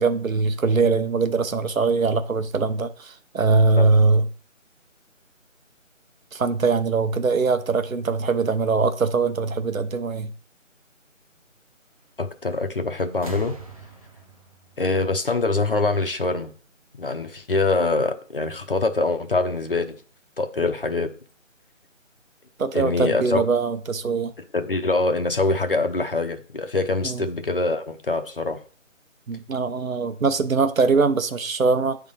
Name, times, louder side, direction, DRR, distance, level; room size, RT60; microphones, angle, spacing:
voice 1, 0.0-4.3 6.3-10.3 22.6-24.3 27.0-27.2 29.3-32.0, right 4 dB, 90° right, 1.0 m, -22 dB
voice 2, 12.2-13.5 14.8-16.5 17.0-20.0 20.4-21.1 22.7-23.4 24.5-28.6, left 3 dB, 45° left, 0.7 m, -24 dB
sound 1, 12.5-12.8 13.1-15.9 17.0-17.1, right 3 dB, 25° right, 0.8 m, -42 dB
9.4 x 3.6 x 5.4 m
figure-of-eight pair, 170°, 39 cm